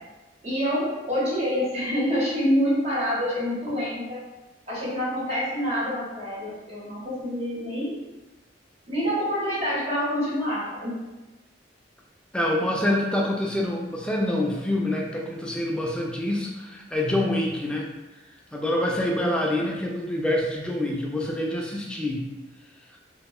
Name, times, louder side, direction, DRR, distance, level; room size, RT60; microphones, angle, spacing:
voice 1, 0.4-4.2 4.7-8.0 8.9-10.9, equal, 35° right, -7 dB, 0.9 m, -26 dB
voice 2, 12.3-17.9 18.5-22.2 22.9-23.0, left 1 dB, 5° left, -2 dB, 0.3 m, -26 dB
2.7 x 2.2 x 2.3 m, 1.1 s
head